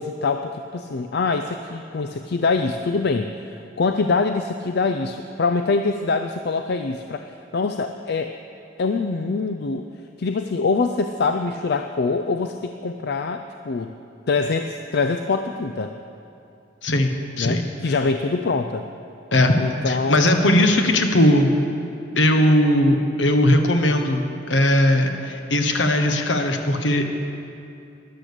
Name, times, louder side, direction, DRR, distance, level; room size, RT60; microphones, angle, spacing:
voice 1, 0.0-8.3 8.8-9.9 10.2-13.9 14.3-16.0 17.4-18.8 19.6-20.6, left 4 dB, 60° left, 7 dB, 0.5 m, -24 dB
voice 2, 16.8-17.7 19.3-19.5 19.9-21.6 22.1-27.1, left 1 dB, 75° left, 5 dB, 1.2 m, -19 dB
13.5 x 10.5 x 6.7 m, 2.6 s
head